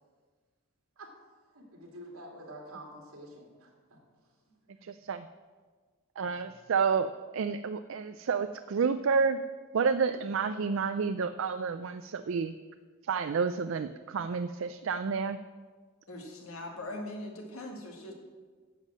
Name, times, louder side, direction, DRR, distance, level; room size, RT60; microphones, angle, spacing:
voice 1, 1.5-4.0 4.2-4.9 6.2-6.6, right 1 dB, 80° right, 0 dB, 2.9 m, -49 dB
voice 2, 4.8-5.3 6.2-9.4 9.7-12.5 13.1-15.4, right 5 dB, 65° right, 10 dB, 0.4 m, -30 dB
voice 3, 16.1-18.1, left 1 dB, 80° left, 2 dB, 2.1 m, -41 dB
10.5 x 7.4 x 7.4 m, 1.5 s
head